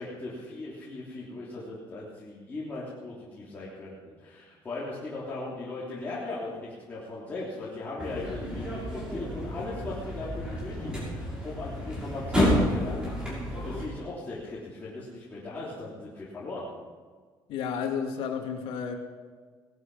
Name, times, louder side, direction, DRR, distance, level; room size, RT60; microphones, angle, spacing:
voice 1, 0.0-16.7, left 2 dB, 20° left, -8 dB, 3.2 m, -38 dB
sound 1, 8.0-13.8, equal, 10° right, 6.3 m, -30 dB
voice 2, 17.5-18.9, left 7 dB, 80° left, 3 dB, 2.2 m, -31 dB
18.5 x 12.5 x 5.5 m, 1.5 s
cardioid pair, 165°, 9 cm